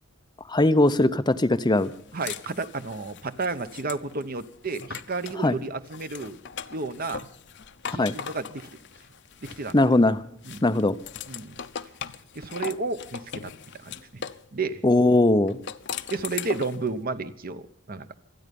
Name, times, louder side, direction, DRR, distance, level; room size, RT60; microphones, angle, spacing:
voice 1, 0.5-1.9 5.4-5.6 8.0-8.2 9.7-10.2 10.6-11.0 14.8-15.6, left 2 dB, 20° left, 10 dB, 0.7 m, -20 dB
sound 1, 1.8-5.4 5.9-10.0 10.4-14.5 15.5-16.9, left 7 dB, 60° left, 0.8 m, -39 dB
voice 2, 2.1-6.4 6.7-7.3 7.9-8.7 9.4-9.8 10.4-10.6 11.3-11.6 12.3-14.2 14.5-14.8 16.1-18.1, right 3 dB, 45° right, 12 dB, 0.9 m, -32 dB
26.5 x 9.7 x 5.3 m, 0.66 s
head